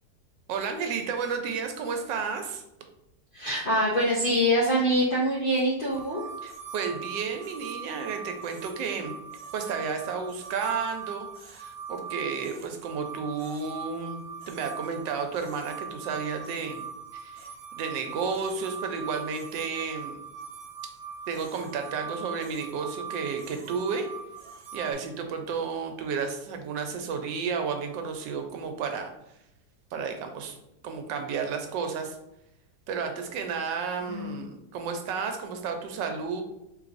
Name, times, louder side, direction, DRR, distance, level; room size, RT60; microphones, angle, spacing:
voice 1, 0.5-2.6 6.4-9.1 9.5-16.8 17.1-17.5 17.8-20.2 21.3-24.1 24.7-29.1 29.9-30.6 30.8-32.2 32.9-36.4, right 5 dB, 85° right, 5 dB, 1.3 m, -32 dB
voice 2, 3.3-6.2 34.1-34.4, equal, 85° left, -6 dB, 0.4 m, -24 dB
sound 1, 5.9-24.9, right 6 dB, 70° right, 1.1 m, -41 dB
3.9 x 3.2 x 2.5 m, 0.86 s
omnidirectional pair, 1.9 m